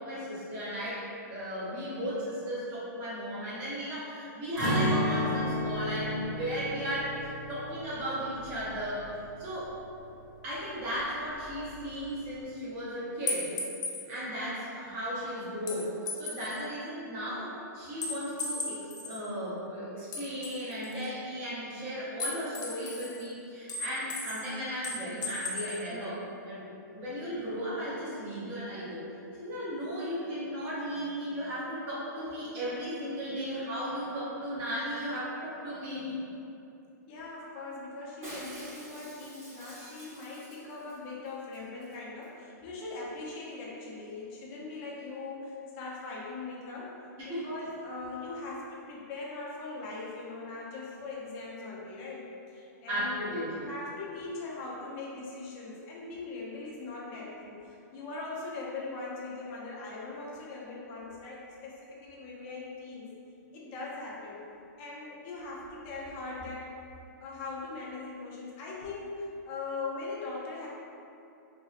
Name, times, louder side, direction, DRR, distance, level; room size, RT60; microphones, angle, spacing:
voice 1, 0.0-9.1 9.4-9.7 10.4-13.5 14.1-15.9 16.2-29.0 29.4-36.2 47.3-47.5 48.2-48.3 52.9-53.7, equal, 20° right, -9 dB, 0.6 m, -35 dB
Acoustic guitar, 4.6-10.5 10.8-11.0 11.4-11.9, equal, 75° right, 1.2 m, -33 dB
sound 1, 13.3-14.0 15.7-16.6 18.0-19.2 20.1-21.1 22.2-23.2 23.7-24.5 24.8-25.8, left 3 dB, 80° left, 0.6 m, -36 dB
voice 2, 37.1-47.0 47.2-63.1 63.5-64.4 64.8-66.8 67.2-70.7, left 3 dB, 25° left, -5 dB, 0.4 m, -40 dB
Shatter, 38.2-41.0 41.3-41.4 41.5-41.9 42.2-42.3, right 1 dB, 45° right, 1.2 m, -46 dB
2.9 x 2.8 x 2.3 m, 2.7 s
hypercardioid pair, 175°, 10 cm